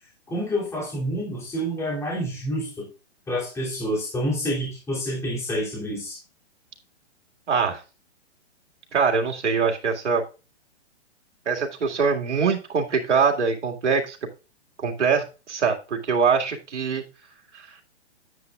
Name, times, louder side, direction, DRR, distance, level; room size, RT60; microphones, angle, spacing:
voice 1, 0.3-2.9 3.3-6.2, equal, 10° left, -4 dB, 2.7 m, -28 dB
voice 2, 7.5-7.8 8.9-10.2 11.5-14.2 14.8-17.0, right 5 dB, 85° right, 3 dB, 2.1 m, -23 dB
9.4 x 9.2 x 2.4 m, 0.31 s
hypercardioid pair, 150°, 35 cm